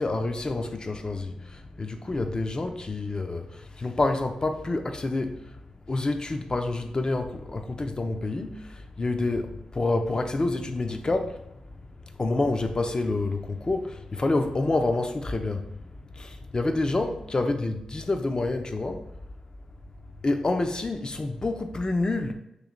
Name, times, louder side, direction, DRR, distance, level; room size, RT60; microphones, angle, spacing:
voice 1, 0.0-5.6 5.9-11.9 12.2-19.0 20.2-22.3, left 2 dB, 35° left, 6 dB, 0.5 m, -28 dB
3.1 x 2.8 x 3.8 m, 0.83 s
supercardioid pair, 45°, 2 cm